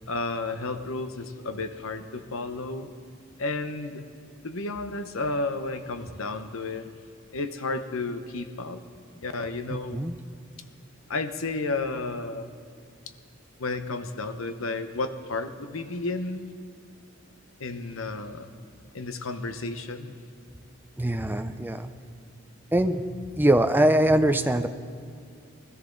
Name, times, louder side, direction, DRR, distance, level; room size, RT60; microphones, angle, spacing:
voice 1, 0.1-2.9 3.4-4.0 4.4-6.9 7.3-8.8 9.2-10.1 11.1-12.5 13.6-16.5 17.6-18.5 18.9-20.2, left 3 dB, 80° left, 9 dB, 0.9 m, -32 dB
voice 2, 9.7-10.1 21.0-21.9 22.7-23.0 23.4-24.7, right 1 dB, 10° right, 9 dB, 0.4 m, -22 dB
21.0 x 13.5 x 3.9 m, 2.4 s
head